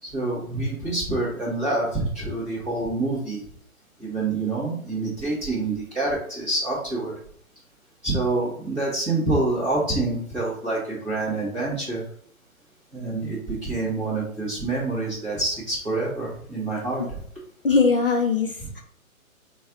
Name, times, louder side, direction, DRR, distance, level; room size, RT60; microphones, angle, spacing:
voice 1, 0.0-3.4 4.0-7.1 8.0-12.0 12.9-17.0, right 2 dB, 10° right, -10 dB, 0.6 m, -27 dB
voice 2, 17.6-18.8, left 4 dB, 40° left, 1 dB, 0.5 m, -21 dB
4.0 x 2.3 x 3.7 m, 0.62 s
hypercardioid pair, 155°, 43 cm